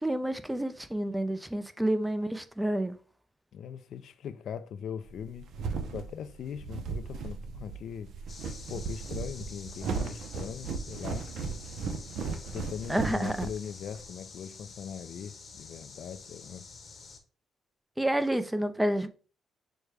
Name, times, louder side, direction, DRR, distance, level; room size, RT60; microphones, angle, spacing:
voice 1, 0.0-3.0 12.9-13.5 18.0-19.1, right 1 dB, 10° right, 0.4 m, -29 dB
voice 2, 3.5-5.5 5.9-8.1 8.7-11.3 12.5-16.6, left 8 dB, 70° left, 0.3 m, -40 dB
sound 1, 5.1-14.1, right 5 dB, 70° right, 0.6 m, -36 dB
sound 2, 8.3-17.2, left 4 dB, 45° left, 0.8 m, -48 dB
6.2 x 2.2 x 3.3 m
cardioid pair, 90°, 0 cm